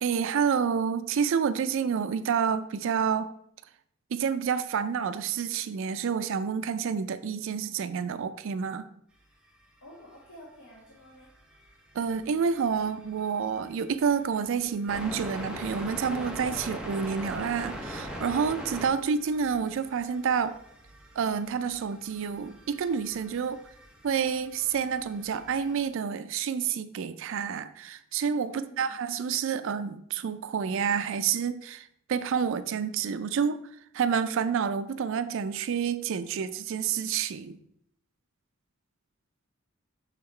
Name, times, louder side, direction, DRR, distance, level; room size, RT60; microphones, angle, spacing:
voice 1, 0.0-3.3 4.1-8.9 11.9-20.6 21.2-23.6 24.0-33.6 33.9-37.6, right 6 dB, 65° right, 0.4 m, -29 dB
voice 2, 9.8-11.3 28.5-29.0, right 1 dB, 80° left, 1.5 m, -50 dB
sound 1, 10.1-10.2 10.7-10.8 11.2-25.9, equal, 5° right, 0.7 m, -42 dB
6.0 x 3.8 x 4.3 m
head